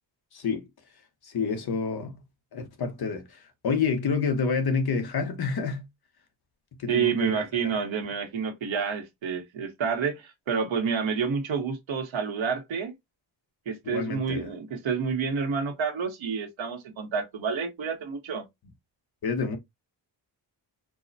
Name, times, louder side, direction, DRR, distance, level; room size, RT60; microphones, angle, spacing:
voice 1, 0.3-0.7 1.2-2.1 2.5-5.8 6.8-7.4 13.9-14.5 19.2-19.6, left 5 dB, 55° left, 0.9 m, -28 dB
voice 2, 6.9-12.9 13.7-18.5, right 6 dB, 85° right, 1.2 m, -29 dB
4.6 x 2.1 x 2.6 m
wide cardioid pair, 155°, 45 cm